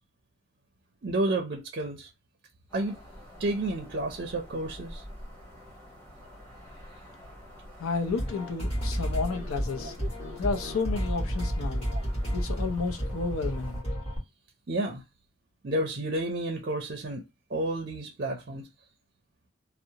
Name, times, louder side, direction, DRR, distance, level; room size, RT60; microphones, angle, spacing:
voice 1, 1.0-2.1 2.7-3.0 3.4-5.0 11.9-12.0 14.7-15.0 15.6-18.7, right 1 dB, 45° right, 0.4 m, -31 dB
sound 1, 2.7-13.8, equal, 10° left, 0.9 m, -47 dB
voice 2, 7.8-10.0 10.4-11.9 12.3-13.8, left 4 dB, 90° left, 0.6 m, -31 dB
sound 2, 8.1-14.2, equal, 30° left, 1.2 m, -31 dB
2.6 x 2.0 x 2.7 m
head